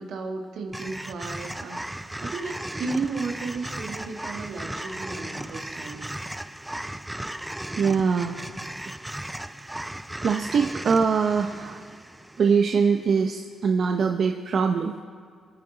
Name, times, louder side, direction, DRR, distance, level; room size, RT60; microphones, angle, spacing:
voice 1, 0.0-6.0, right 4 dB, 75° right, 3 dB, 1.8 m, -34 dB
sound 1, 0.7-13.0, right 1 dB, 5° right, 0.5 m, -36 dB
voice 2, 7.8-8.4 10.2-11.8 12.4-15.0, right 5 dB, 55° right, 5 dB, 0.7 m, -23 dB
25.0 x 9.5 x 3.9 m, 2.1 s
cardioid pair, 115°, 0 cm